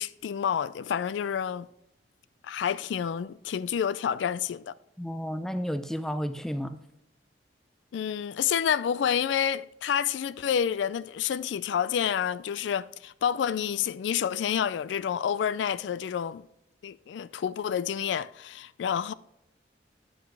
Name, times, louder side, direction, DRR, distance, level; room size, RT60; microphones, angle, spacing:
voice 1, 0.0-1.7 2.4-4.7 7.9-16.4 16.8-19.1, left 8 dB, 80° left, 0.3 m, -29 dB
voice 2, 5.0-6.8, equal, ahead, 0.4 m, -32 dB
9.4 x 7.0 x 3.3 m
head